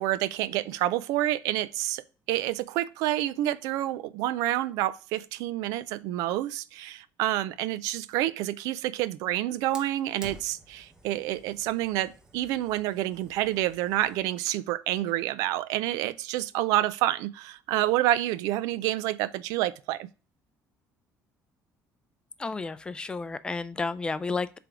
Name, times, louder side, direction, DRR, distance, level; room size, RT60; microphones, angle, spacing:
voice 1, 0.0-20.1, right 14 dB, 85° right, 0.4 m, -28 dB
Fire, 9.7-14.7, right 1 dB, 10° right, 0.9 m, -51 dB
voice 2, 22.4-24.6, left 3 dB, 15° left, 0.4 m, -32 dB
7.6 x 3.4 x 4.6 m
cardioid pair, 140°, 6 cm